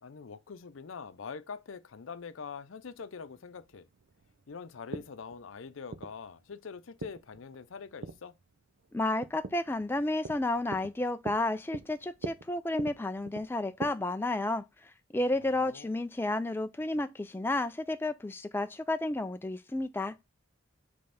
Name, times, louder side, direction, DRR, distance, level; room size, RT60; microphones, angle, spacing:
voice 1, 0.0-3.9 4.5-8.3 15.3-15.9, left 5 dB, 85° left, 0.6 m, -44 dB
sound 1, 2.9-13.9, right 3 dB, 75° right, 0.6 m, -44 dB
voice 2, 8.9-20.1, left 2 dB, 10° left, 0.3 m, -32 dB
5.3 x 3.4 x 5.7 m
head